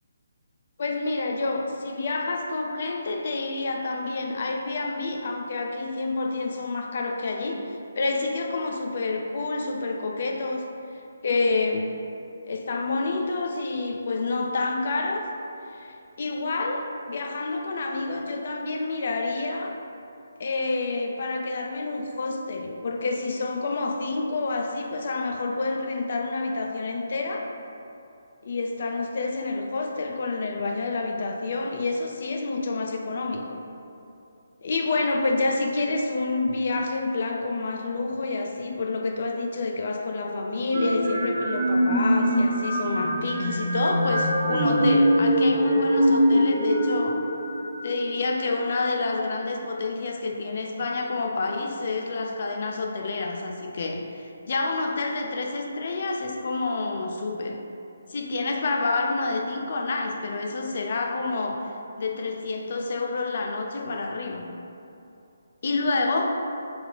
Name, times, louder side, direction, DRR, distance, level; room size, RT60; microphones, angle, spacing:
voice 1, 0.8-10.7 11.2-11.9 12.4-15.2 15.7-19.7 20.4-27.5 28.4-33.6 34.6-47.2 47.8-57.6 58.1-61.6 62.0-64.5 65.6-66.4, left 3 dB, 50° left, 2 dB, 0.3 m, -28 dB
sound 1, 40.7-48.4, equal, 35° right, 0.8 m, -23 dB
2.8 x 2.4 x 3.7 m, 2.7 s
figure-of-eight pair, 145°, 0 cm